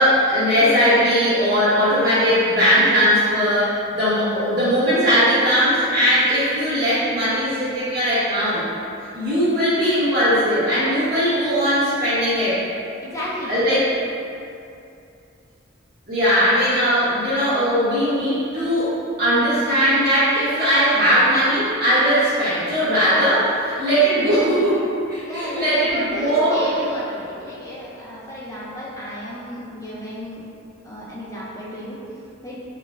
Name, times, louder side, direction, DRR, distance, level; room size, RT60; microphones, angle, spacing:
voice 1, 0.0-8.6 9.1-12.6 13.5-13.8 16.1-24.8 25.1-26.7, equal, 50° right, -12 dB, 1.2 m, -19 dB
voice 2, 13.0-13.6 25.2-30.4 30.8-32.0 32.4-32.6, equal, 15° left, -7 dB, 0.5 m, -32 dB
4.9 x 2.1 x 2.4 m, 2.6 s
head